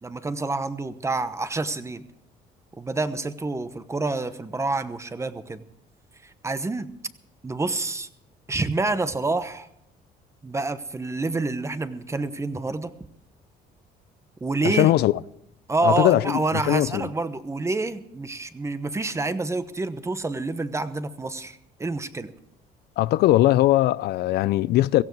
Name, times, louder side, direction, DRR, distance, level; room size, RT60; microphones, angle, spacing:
voice 1, 0.0-2.1 2.8-5.6 6.2-6.9 7.4-8.1 8.5-9.7 10.4-12.9 14.4-14.9 15.7-22.3, right 3 dB, 15° right, 1.0 m, -28 dB
voice 2, 14.8-15.1 15.8-16.4 16.7-17.1 23.0-25.0, left 15 dB, 75° left, 0.5 m, -20 dB
17.0 x 15.0 x 4.7 m
cardioid pair, 110°, 17 cm